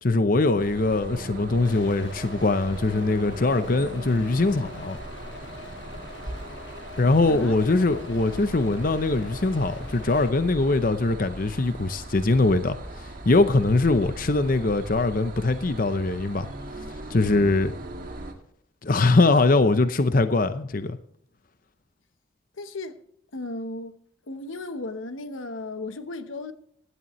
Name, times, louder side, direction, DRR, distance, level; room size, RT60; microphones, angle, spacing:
voice 1, 0.0-5.0 7.0-16.5 17.1-17.7 18.8-21.0, left 2 dB, 45° left, 0.7 m, -22 dB
sound 1, 0.6-18.3, right 1 dB, 45° right, 1.8 m, -39 dB
sound 2, 1.6-10.3, left 3 dB, 65° left, 1.4 m, -44 dB
voice 2, 7.3-8.0 22.6-23.0 23.3-23.9 24.3-26.5, left 2 dB, 90° left, 1.0 m, -35 dB
16.0 x 11.0 x 3.1 m
head